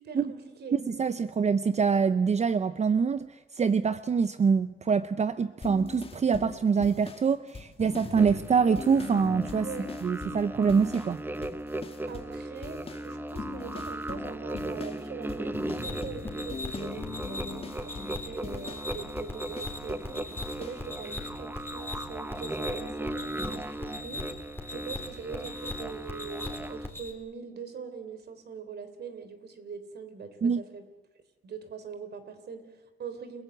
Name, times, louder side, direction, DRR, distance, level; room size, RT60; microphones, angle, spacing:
voice 1, 0.0-0.7 9.6-9.9 12.1-24.4 24.7-30.9 31.4-33.4, right 6 dB, 55° right, 10 dB, 3.5 m, -42 dB
voice 2, 0.7-3.3 3.5-9.7 10.0-11.2 30.4-30.6, right 6 dB, 35° right, 13 dB, 0.7 m, -25 dB
sound 1, 5.6-11.2 11.4-12.4 12.6-20.1 20.4-20.8, left 4 dB, 30° left, 1.8 m, -41 dB
sound 2, 8.1-26.9, right 1 dB, 10° right, 0.9 m, -38 dB
sound 3, 15.8-27.1, left 2 dB, 10° left, 3.8 m, -40 dB
29.5 x 16.5 x 7.9 m, 1.1 s
cardioid pair, 90°, 20 cm